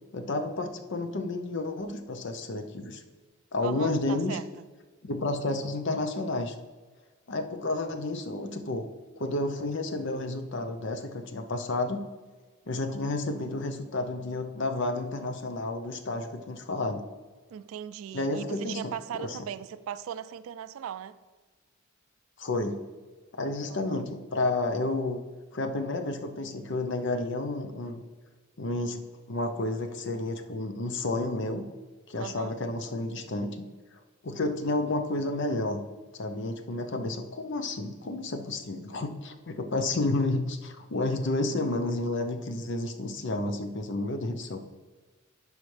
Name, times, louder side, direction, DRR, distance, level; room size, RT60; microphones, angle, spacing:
voice 1, 0.1-3.0 3.5-4.4 5.0-6.5 7.3-8.9 9.2-12.0 12.7-17.0 18.1-18.8 19.2-19.4 22.4-22.8 23.3-25.2 25.5-28.0 28.6-29.0 29.3-31.6 32.1-33.7 34.2-35.8 36.1-44.6, left 2 dB, 60° left, 0.7 m, -31 dB
voice 2, 3.6-4.6 17.5-21.2 23.7-24.0 32.2-32.5, right 9 dB, 90° right, 0.3 m, -38 dB
11.5 x 4.9 x 3.3 m
head